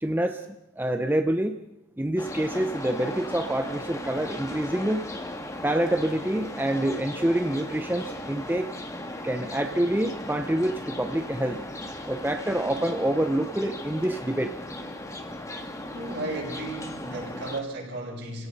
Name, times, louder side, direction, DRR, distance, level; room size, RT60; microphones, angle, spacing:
voice 1, 0.0-1.6 2.0-5.1 5.6-8.7 9.2-11.6 12.1-14.5, right 1 dB, 10° right, 7 dB, 0.7 m, -27 dB
sound 1, 2.2-17.6, left 1 dB, 15° left, 1.8 m, -37 dB
voice 2, 15.9-18.5, right 2 dB, 60° right, -2 dB, 6.9 m, -34 dB
30.0 x 17.5 x 5.5 m, 0.91 s
head